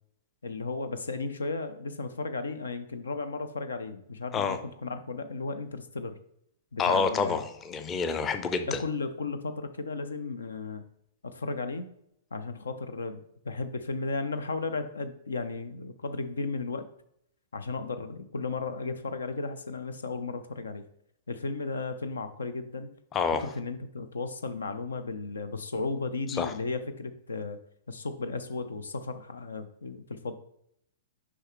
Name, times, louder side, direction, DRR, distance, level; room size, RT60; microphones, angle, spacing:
voice 1, 0.4-6.2 6.7-7.4 8.6-10.8 11.2-11.9 12.3-16.9 17.5-20.8 21.3-22.9 23.4-27.6 27.9-30.3, left 3 dB, 70° left, 10 dB, 0.5 m, -34 dB
voice 2, 6.8-8.8 23.1-23.5 26.3-26.5, left 5 dB, 20° left, 9 dB, 0.6 m, -28 dB
6.3 x 5.0 x 3.0 m, 0.73 s
figure-of-eight pair, 105°, 0 cm